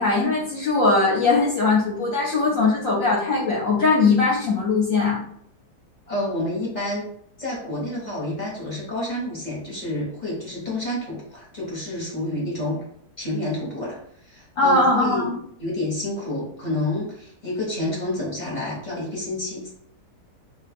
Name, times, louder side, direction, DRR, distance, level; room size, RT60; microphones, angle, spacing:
voice 1, 0.0-5.2 14.6-15.3, left 3 dB, 55° left, -5 dB, 1.1 m, -20 dB
voice 2, 6.1-7.1 7.4-12.8 13.2-15.3 15.6-19.7, left 1 dB, 30° left, -6 dB, 1.0 m, -29 dB
2.7 x 2.4 x 4.2 m, 0.67 s
omnidirectional pair, 1.9 m